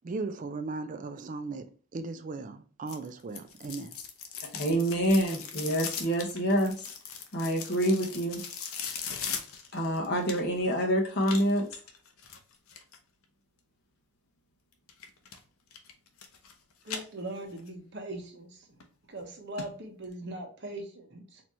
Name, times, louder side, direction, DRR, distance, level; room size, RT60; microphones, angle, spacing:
voice 1, 0.0-4.0, right 3 dB, 35° right, 0.3 m, -37 dB
sound 1, 2.9-10.7 11.2-13.0 14.9-15.4 15.7-16.5 16.8-17.7 18.1-18.2 18.8-18.9 19.2-19.3 19.6-19.7 20.0-20.1, left 7 dB, 75° left, 0.8 m, -39 dB
voice 2, 4.5-6.7 7.3-8.4 9.7-11.6, equal, 50° left, 1.1 m, -27 dB
voice 3, 16.8-18.7 19.1-21.4, right 1 dB, 50° right, 1.0 m, -40 dB
4.3 x 2.8 x 3.0 m
head